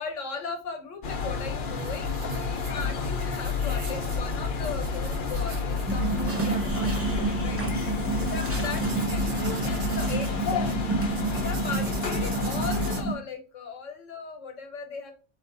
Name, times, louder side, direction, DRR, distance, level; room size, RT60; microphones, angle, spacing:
voice 1, 0.0-6.9 7.3-7.6 8.3-10.8 11.3-15.1, left 5 dB, 90° left, 5 dB, 1.3 m, -37 dB
sound 1, 1.0-13.0, left 4 dB, 50° left, 0.8 m, -30 dB
sound 2, 1.7-13.0, right 4 dB, 55° right, 1.0 m, -43 dB
sound 3, 5.9-13.2, right 4 dB, 15° right, 0.9 m, -29 dB
3.6 x 2.9 x 4.4 m, 0.35 s
omnidirectional pair, 1.3 m